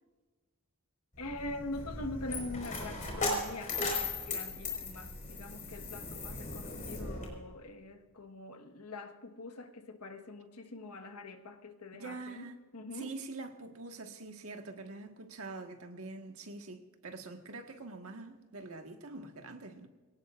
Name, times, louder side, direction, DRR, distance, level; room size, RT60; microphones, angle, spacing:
voice 1, 1.2-13.1, left 2 dB, 85° left, 1.5 m, -44 dB
Coin (dropping), 1.2-7.3, left 3 dB, 35° left, 5.0 m, -37 dB
voice 2, 12.0-12.6 12.9-19.9, right 3 dB, 65° right, 1.6 m, -45 dB
23.0 x 18.0 x 2.5 m
head